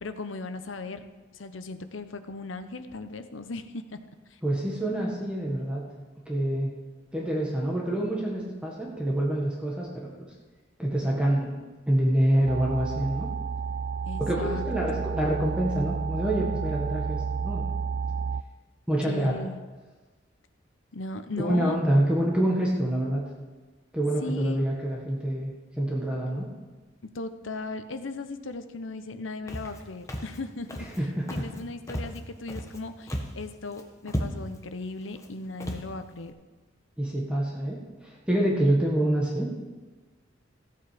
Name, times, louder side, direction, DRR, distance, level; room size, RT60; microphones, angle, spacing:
voice 1, 0.0-4.0 4.3-4.4 14.0-14.6 14.9-15.0 19.1-19.6 20.9-21.8 24.2-24.7 27.0-30.9 31.3-36.3, left 3 dB, 90° left, 9 dB, 0.9 m, -37 dB
voice 2, 4.4-5.8 6.2-6.7 7.1-10.1 10.8-13.3 14.2-17.6 18.9-19.4 21.4-23.3 23.9-26.5 31.0-31.5 37.0-39.5, right 1 dB, 5° right, -3 dB, 1.6 m, -26 dB
sound 1, 12.5-18.4, right 5 dB, 55° right, 0.3 m, -31 dB
Walk footsteps, 29.5-29.8 30.1-30.4 30.7-31.0 31.3-31.6 31.9-32.8 33.1-33.4 33.7-33.8 34.1-34.6 35.1-35.3 35.6-35.9, equal, 15° left, 1.3 m, -34 dB
15.0 x 8.6 x 5.1 m, 1.3 s
head